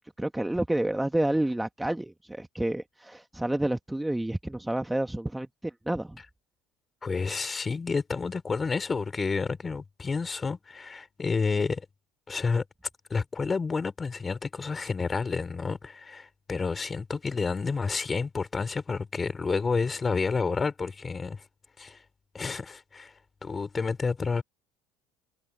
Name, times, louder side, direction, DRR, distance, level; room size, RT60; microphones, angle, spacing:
voice 1, 0.2-6.2, right 1 dB, 5° right, 1.2 m, -29 dB
voice 2, 7.0-11.9 12.3-12.6 13.1-21.4 21.8-22.0 22.3-23.1 23.4-24.4, left 4 dB, 20° left, 3.8 m, -30 dB
supercardioid pair, 110°, 0 cm